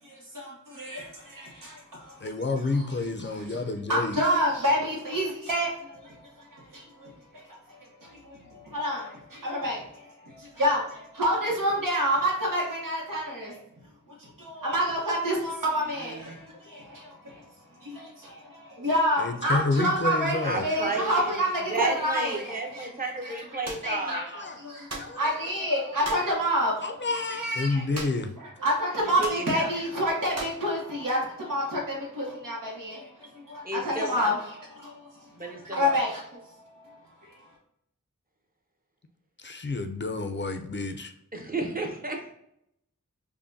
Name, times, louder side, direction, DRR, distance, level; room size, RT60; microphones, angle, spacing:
voice 1, 0.0-3.6 3.9-13.6 14.2-22.9 23.2-23.4 23.8-28.1 28.4-37.4, equal, 85° right, -4 dB, 1.0 m, -29 dB
voice 2, 2.2-4.2 19.2-20.6 23.8-24.0 24.4-24.6 25.0-25.2 26.8-28.3 39.4-41.1, left 3 dB, 35° left, 7 dB, 0.4 m, -29 dB
voice 3, 15.7-16.3 20.4-21.3 21.7-24.3 29.0-29.7 33.6-34.3 35.3-36.0 41.3-42.3, right 3 dB, 30° right, 1 dB, 0.8 m, -33 dB
sound 1, 23.6-23.9 24.9-25.2 26.0-26.3 27.9-28.3 28.6-28.7 29.2-29.5 30.3-30.6, right 2 dB, 55° right, 1.0 m, -37 dB
5.5 x 2.2 x 2.6 m, 0.76 s
wide cardioid pair, 70°, 32 cm